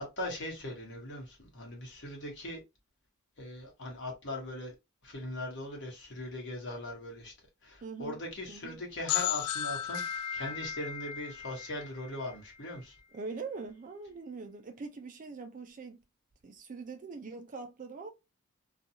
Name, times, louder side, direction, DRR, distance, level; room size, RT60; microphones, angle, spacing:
voice 1, 0.0-2.6 3.4-4.7 5.0-7.3 7.6-12.9, left 1 dB, 55° left, 1.2 m, -40 dB
voice 2, 7.8-8.2 8.5-8.8 13.1-16.0 16.4-18.1, right 4 dB, 35° right, 0.4 m, -42 dB
sound 1, 9.1-12.7, left 10 dB, 80° left, 0.3 m, -35 dB
2.4 x 2.3 x 2.8 m
head